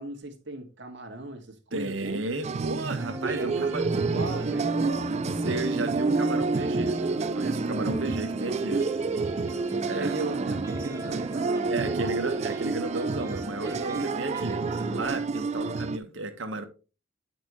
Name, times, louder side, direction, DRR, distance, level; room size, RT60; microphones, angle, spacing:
voice 1, 0.0-2.2 3.3-5.2 8.3-8.8 9.7-12.2 13.6-15.0, right 2 dB, 65° right, 2.0 m, -37 dB
voice 2, 1.7-3.8 5.4-8.8 9.9-10.2 11.7-16.6, right 2 dB, 90° right, 1.4 m, -33 dB
sound 1, 2.4-16.0, right 4 dB, 35° right, 0.3 m, -29 dB
sound 2, 3.0-15.2, equal, 15° right, 1.0 m, -37 dB
9.7 x 5.9 x 3.0 m
head